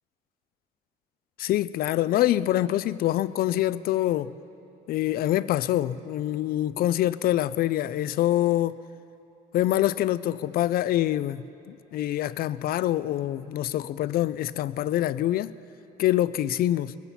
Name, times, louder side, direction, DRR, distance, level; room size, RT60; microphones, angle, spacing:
voice 1, 1.4-4.3 4.9-8.8 9.5-15.5 16.0-16.9, left 13 dB, 60° left, 16 dB, 0.4 m, -25 dB
21.0 x 15.0 x 4.2 m, 2.8 s
cardioid pair, 110°, 17 cm